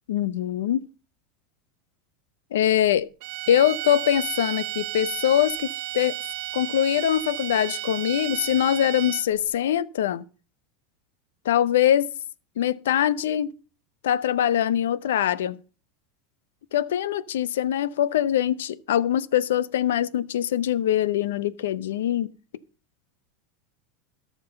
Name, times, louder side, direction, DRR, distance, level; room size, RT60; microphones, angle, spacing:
voice 1, 0.1-0.8 2.5-3.1 3.5-5.7 5.9-6.2 6.5-10.2 11.4-12.1 12.6-13.5 14.0-15.6 16.7-22.3, left 10 dB, 90° left, 0.6 m, -23 dB
sound 1, 3.2-9.4, right 16 dB, 65° right, 0.7 m, -33 dB
13.5 x 6.0 x 5.5 m
supercardioid pair, 120°, 0 cm